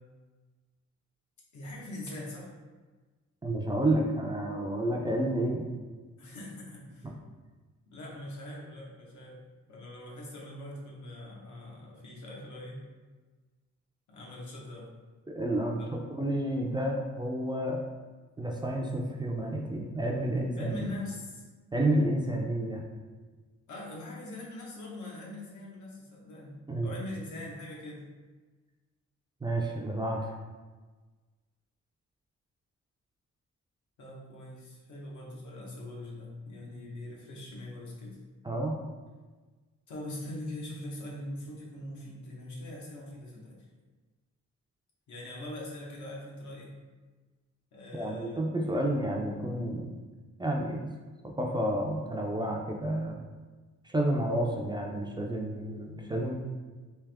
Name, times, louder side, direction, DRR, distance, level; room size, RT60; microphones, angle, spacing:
voice 1, 1.5-2.5 6.2-7.1 7.9-9.4 9.7-12.8 14.1-14.9 20.6-21.5 23.7-28.1 34.0-38.2 39.9-43.7 45.1-46.8 47.7-48.4 48.7-49.0, left 1 dB, 85° left, -3 dB, 1.1 m, -42 dB
voice 2, 3.4-5.7 7.0-7.1 15.4-15.8 16.1-17.8 18.4-20.9 21.7-22.8 26.7-26.9 29.4-30.3 38.4-38.8 47.9-49.9 50.4-50.9 51.4-53.2 53.8-56.3, right 1 dB, 15° right, -1 dB, 0.3 m, -30 dB
3.4 x 2.8 x 3.4 m, 1.3 s
wide cardioid pair, 155°, 29 cm